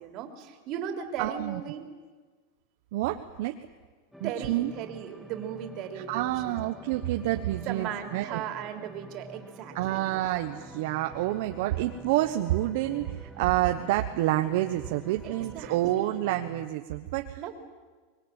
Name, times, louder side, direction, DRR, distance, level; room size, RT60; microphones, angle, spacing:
voice 1, 0.0-1.9 4.2-6.6 7.6-10.1 15.2-16.2 17.4-17.5, right 8 dB, 40° right, 5 dB, 3.3 m, -37 dB
voice 2, 1.2-1.6 2.9-3.6 4.2-4.7 5.9-8.4 9.7-17.5, right 15 dB, 60° right, 6 dB, 1.1 m, -28 dB
sound 1, 4.1-16.7, equal, ahead, 0.9 m, -48 dB
25.0 x 21.5 x 9.1 m, 1.4 s
supercardioid pair, 155°, 0 cm